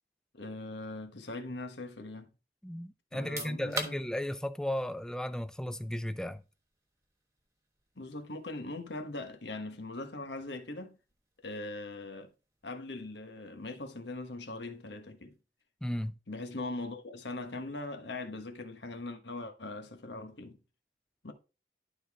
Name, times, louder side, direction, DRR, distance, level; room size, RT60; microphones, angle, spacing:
voice 1, 0.3-2.3 3.1-4.0 8.0-11.0 11.4-12.3 12.6-15.4 16.3-20.6 21.2-21.3, left 2 dB, 85° left, 1.3 m, -41 dB
voice 2, 2.6-6.4 15.8-16.2, left 1 dB, 5° left, 0.4 m, -35 dB
sound 1, 3.1-15.8, right 2 dB, 15° right, 1.3 m, -49 dB
11.5 x 4.1 x 3.6 m
head